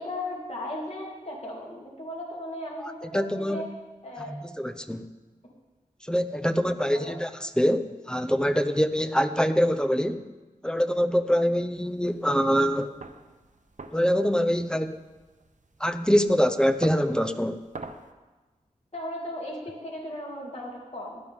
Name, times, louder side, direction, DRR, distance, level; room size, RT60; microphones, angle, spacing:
voice 1, 0.0-3.7 4.0-4.4 6.6-7.2 11.5-11.6 18.9-21.2, left 1 dB, 45° left, -2 dB, 2.8 m, -37 dB
voice 2, 2.8-3.6 4.6-5.0 6.1-10.2 10.6-12.9 13.9-15.0 15.8-17.6, equal, 5° left, 10 dB, 0.8 m, -24 dB
sound 1, 11.8-18.1, right 3 dB, 60° right, 0.9 m, -46 dB
16.0 x 11.0 x 3.7 m, 1.2 s
cardioid pair, 45°, 14 cm